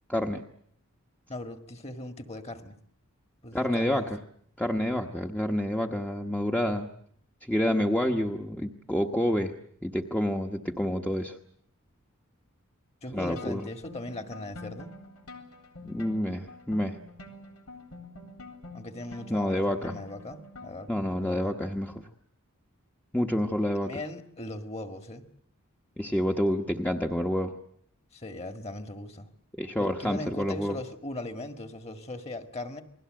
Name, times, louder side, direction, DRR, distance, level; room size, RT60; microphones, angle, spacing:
voice 1, 0.1-0.4 3.5-4.2 4.6-6.9 7.4-9.5 9.8-11.4 13.1-13.7 15.8-17.0 19.3-20.0 20.9-22.0 23.1-24.0 26.0-27.5 29.5-30.8, equal, 5° left, 2 dB, 1.1 m, -28 dB
voice 2, 1.3-2.8 3.4-4.1 13.0-14.9 18.7-21.6 23.8-25.2 28.1-29.3 29.8-32.8, left 2 dB, 30° left, 8 dB, 1.8 m, -39 dB
sound 1, 13.4-21.0, left 2 dB, 90° left, 3.9 m, -47 dB
29.0 x 21.0 x 7.7 m, 0.66 s
head